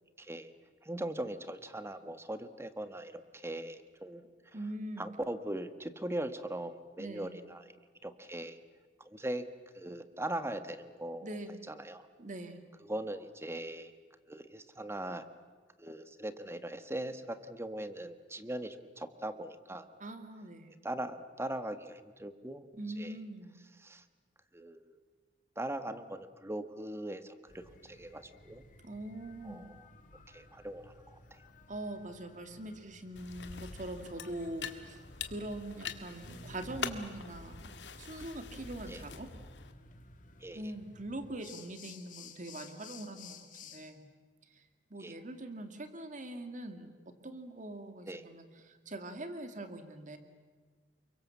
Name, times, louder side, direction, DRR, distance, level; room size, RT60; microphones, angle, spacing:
voice 1, 0.2-0.5 0.8-4.3 5.0-7.7 8.0-8.6 9.0-9.5 9.7-11.4 11.7-12.1 12.8-13.9 14.3-15.3 15.8-19.9 20.8-22.7 23.0-23.2 23.8-24.0 24.5-24.9 25.6-28.6 29.4-29.8 30.3-31.4 38.9-39.0 40.4-40.6 45.0-45.1 48.1-48.2, right 1 dB, 15° right, 10 dB, 1.4 m, -40 dB
voice 2, 4.5-5.1 7.0-7.4 11.2-11.7 12.2-12.6 20.0-20.8 22.7-23.5 28.8-29.6 31.7-37.7 38.0-39.3 40.5-44.1 44.5-50.2, right 1 dB, 45° right, 7 dB, 2.3 m, -43 dB
sound 1, 27.5-43.9, left 3 dB, 50° left, 2.6 m, -55 dB
sound 2, 33.2-39.7, left 6 dB, 80° left, 1.8 m, -44 dB
30.0 x 23.0 x 7.4 m, 1.5 s
head